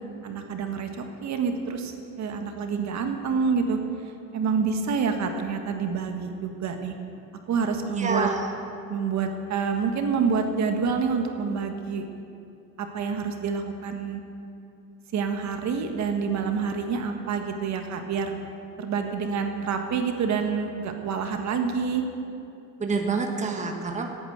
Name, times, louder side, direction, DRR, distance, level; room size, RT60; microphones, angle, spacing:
voice 1, 0.2-3.8 4.3-6.9 7.5-8.3 8.9-12.0 12.9-14.2 15.1-18.4 18.8-22.0, right 5 dB, 50° right, 5 dB, 1.5 m, -27 dB
voice 2, 8.0-8.5 22.8-24.1, right 4 dB, 20° right, 3 dB, 1.4 m, -27 dB
17.0 x 9.1 x 7.9 m, 2.7 s
cardioid pair, 130°, 36 cm